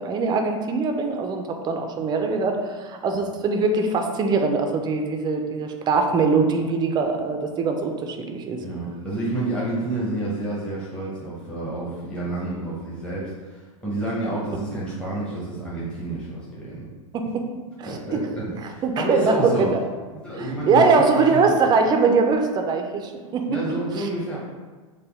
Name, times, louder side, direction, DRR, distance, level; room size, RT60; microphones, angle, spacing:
voice 1, 0.0-8.6 17.1-17.5 17.8-18.2 18.8-19.8 20.4-24.1, right 4 dB, 25° right, 4 dB, 0.4 m, -22 dB
voice 2, 8.6-16.8 17.8-19.7 20.1-21.5 23.5-24.4, right 2 dB, 5° left, -7 dB, 0.8 m, -29 dB
3.5 x 2.2 x 3.4 m, 1.4 s
hypercardioid pair, 110°, 18 cm